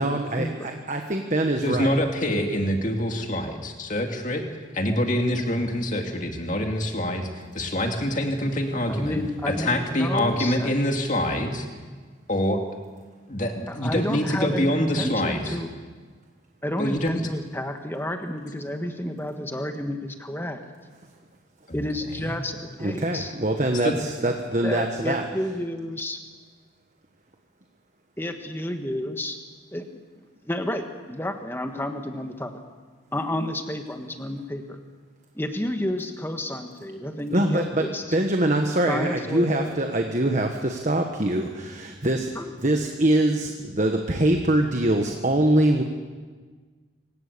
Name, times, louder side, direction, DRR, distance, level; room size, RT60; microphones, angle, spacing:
voice 1, 0.0-1.9 22.8-25.3 37.3-37.8 38.1-42.3 42.6-45.8, right 1 dB, 40° right, 4 dB, 1.4 m, -23 dB
voice 2, 1.6-4.5 4.7-9.2 9.5-11.7 12.3-12.6 13.3-15.6 16.8-17.2 21.7-21.8 22.2-22.3 23.8-24.0, left 1 dB, 40° left, 3 dB, 2.4 m, -25 dB
voice 3, 8.7-10.7 13.7-15.7 16.6-20.6 21.7-23.3 24.6-26.2 28.2-29.4 29.7-29.8 30.5-32.5 33.1-34.8 35.3-38.2 38.9-39.7 42.3-42.5, left 1 dB, 10° left, 6 dB, 1.4 m, -30 dB
26.0 x 17.0 x 6.9 m, 1.5 s
head